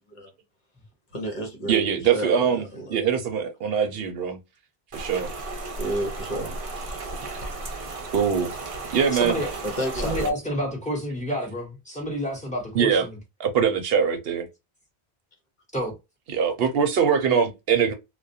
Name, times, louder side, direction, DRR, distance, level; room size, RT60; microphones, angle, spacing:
voice 1, 1.1-3.0 5.8-6.6 9.6-10.3, equal, 50° left, 1.0 m, -31 dB
voice 2, 1.7-2.6 2.9-4.4 4.9-5.3 8.1-8.5 8.9-9.4 12.7-13.1 13.4-14.5 16.3-17.9, right 7 dB, 70° right, 0.8 m, -22 dB
Rain, 4.9-10.3, right 3 dB, 40° right, 0.6 m, -34 dB
voice 3, 9.1-9.5 9.9-13.1 15.7-15.9, equal, 5° left, 1.0 m, -29 dB
2.4 x 2.2 x 2.6 m
omnidirectional pair, 1.0 m